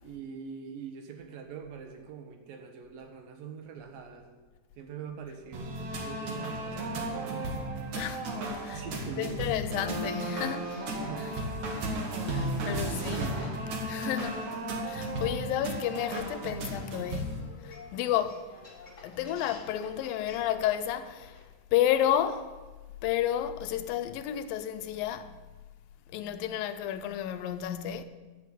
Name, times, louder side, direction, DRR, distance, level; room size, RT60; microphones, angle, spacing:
voice 1, 0.0-4.4 4.8-7.6 8.7-9.5 11.0-11.3 11.7-11.9 12.4-13.6, right 7 dB, 75° right, 3.1 m, -43 dB
sound 1, 5.5-17.4, right 1 dB, 60° right, 2.8 m, -34 dB
voice 2, 7.9-8.3 8.6-8.8 9.2-10.7 12.3-13.3 13.9-14.5 14.8-17.4 17.6-18.5 19.0-21.4 21.7-22.5 23.0-25.4 26.1-28.0, left 11 dB, 85° left, 2.5 m, -31 dB
sound 2, 8.7-21.4, left 2 dB, 35° left, 1.4 m, -52 dB
14.5 x 5.6 x 9.1 m
omnidirectional pair, 4.0 m